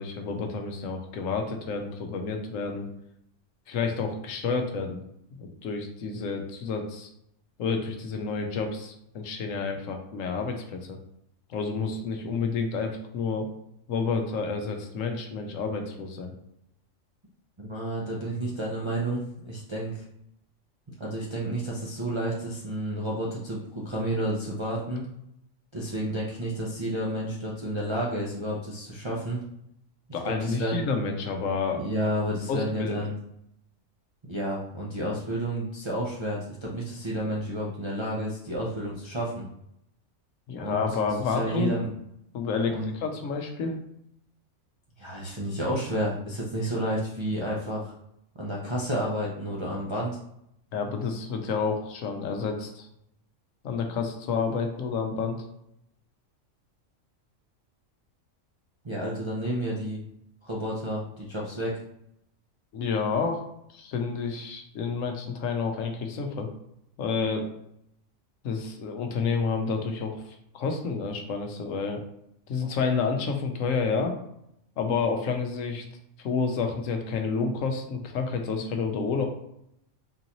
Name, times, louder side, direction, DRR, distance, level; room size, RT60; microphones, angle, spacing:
voice 1, 0.0-2.9 3.7-5.0 5.4-7.1 7.6-11.0 11.5-13.5 13.9-16.3 30.1-31.8 32.5-33.0 40.5-41.7 42.3-43.8 50.7-52.9 53.6-55.5 62.7-63.4 63.7-66.5 67.0-67.5 68.4-72.0 72.5-74.1 74.8-75.8 76.2-79.3, left 5 dB, 80° left, 4 dB, 1.0 m, -29 dB
voice 2, 17.6-20.0 21.0-25.1 25.7-29.4 30.1-30.8 31.7-33.2 34.3-39.5 40.6-40.8 41.2-41.9 42.7-42.9 45.0-47.9 48.4-50.2 58.8-60.0 60.4-61.8, right 1 dB, 45° right, -5 dB, 0.3 m, -31 dB
3.8 x 2.6 x 2.9 m, 0.76 s
omnidirectional pair, 1.3 m